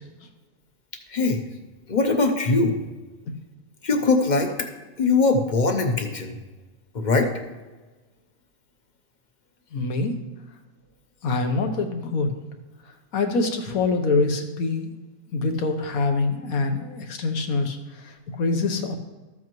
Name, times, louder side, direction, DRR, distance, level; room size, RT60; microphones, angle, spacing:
voice 1, 1.1-1.4 1.9-2.8 3.8-4.7 5.0-6.4 6.9-7.3, left 3 dB, 40° left, 5 dB, 0.8 m, -21 dB
voice 2, 9.7-10.2 11.2-12.3 13.1-14.9 15.3-17.8 18.4-18.9, left 3 dB, 80° left, 5 dB, 1.4 m, -24 dB
13.0 x 7.8 x 3.1 m, 1.2 s
omnidirectional pair, 1.5 m